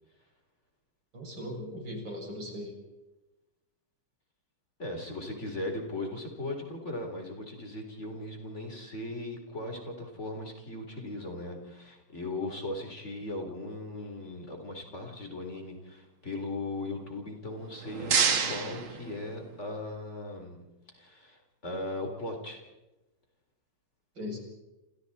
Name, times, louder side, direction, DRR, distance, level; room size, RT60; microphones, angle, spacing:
voice 1, 1.1-2.7 24.2-24.4, left 1 dB, 70° right, 0 dB, 8.0 m, -38 dB
voice 2, 4.8-20.6 20.9-22.6, left 2 dB, 35° left, 3 dB, 4.2 m, -38 dB
sound 1, 17.5-19.8, right 6 dB, 90° right, 2.7 m, -30 dB
29.0 x 28.0 x 4.3 m, 1.0 s
omnidirectional pair, 2.1 m